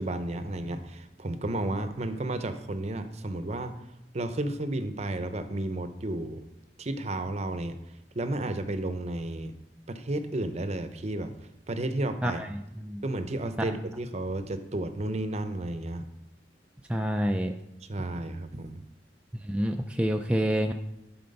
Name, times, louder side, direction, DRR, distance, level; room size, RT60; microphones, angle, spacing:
voice 1, 0.0-3.7 4.1-6.4 6.8-7.8 8.1-9.5 9.9-11.3 11.7-12.4 13.0-16.0 17.9-18.8, right 1 dB, 40° right, 9 dB, 0.7 m, -32 dB
voice 2, 12.2-13.0 13.7-13.8 16.9-17.5 19.4-20.7, equal, 5° right, 3 dB, 0.4 m, -28 dB
12.0 x 4.3 x 5.3 m, 0.88 s
head